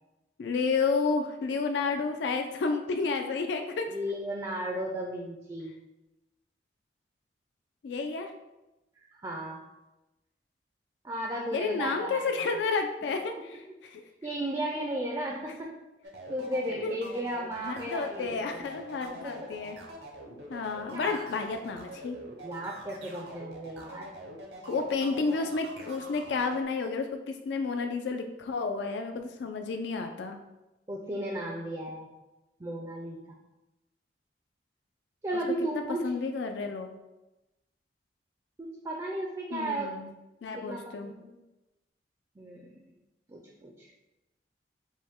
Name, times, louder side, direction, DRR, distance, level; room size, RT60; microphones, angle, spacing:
voice 1, 0.4-3.9 7.8-8.3 11.5-14.0 16.8-16.9 17.6-19.8 20.5-22.2 24.7-30.4 36.0-36.9 39.5-40.1 40.4-41.1, left 4 dB, 80° left, 5 dB, 0.4 m, -31 dB
voice 2, 3.9-5.7 9.0-9.6 11.0-12.3 14.2-15.7 16.3-18.7 19.2-19.5 20.9-21.2 22.4-24.1 30.9-32.1 32.6-33.2 35.2-36.0 38.6-39.9 40.5-41.3 42.4-42.8 43.3-43.9, right 1 dB, 20° right, 0 dB, 0.4 m, -35 dB
sound 1, 16.0-26.6, right 1 dB, 70° right, 0.7 m, -45 dB
5.2 x 2.1 x 3.5 m, 1.0 s
head